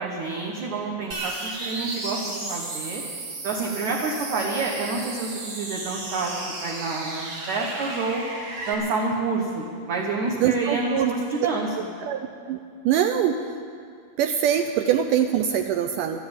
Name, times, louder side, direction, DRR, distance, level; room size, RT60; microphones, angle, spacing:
voice 1, 0.0-1.3 1.6-3.0 3.4-8.2 8.7-11.7, right 3 dB, 60° right, -1 dB, 2.2 m, -28 dB
sound 1, 1.1-8.7, right 2 dB, 45° right, 2.6 m, -34 dB
voice 2, 10.4-11.1 12.0-12.2 12.5-12.6 12.8-13.6 14.2-16.2, right 9 dB, 85° right, 6 dB, 1.9 m, -23 dB
13.0 x 12.0 x 8.8 m, 2.3 s
omnidirectional pair, 4.5 m